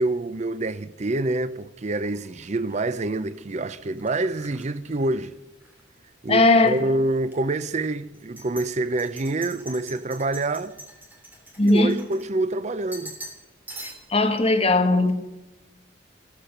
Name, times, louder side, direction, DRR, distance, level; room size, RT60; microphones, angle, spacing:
voice 1, 0.0-5.3 6.2-10.7 11.6-13.1, right 2 dB, 35° right, 0.5 m, -26 dB
sound 1, 1.9-5.8 6.1-6.8 7.3-7.4 8.1-12.6 12.9-13.4 13.7-14.3, right 1 dB, 10° right, 3.2 m, -44 dB
voice 2, 6.3-6.8 11.6-11.9 13.8-15.1, left 2 dB, 30° left, 1.8 m, -19 dB
15.5 x 13.5 x 6.6 m
head